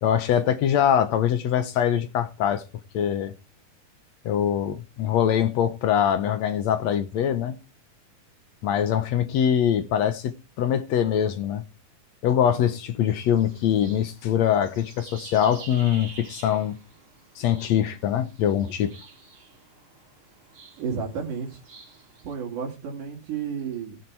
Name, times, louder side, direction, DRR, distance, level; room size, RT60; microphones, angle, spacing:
voice 1, 0.0-2.6 2.9-3.3 4.3-7.6 8.6-11.6 12.2-16.8 17.4-18.9, left 9 dB, 65° left, 2.0 m, -23 dB
sound 1, 13.1-22.3, right 4 dB, 50° right, 3.6 m, -48 dB
voice 2, 20.8-21.6 22.2-24.0, right 6 dB, 75° right, 3.9 m, -32 dB
17.0 x 7.8 x 4.7 m
omnidirectional pair, 3.7 m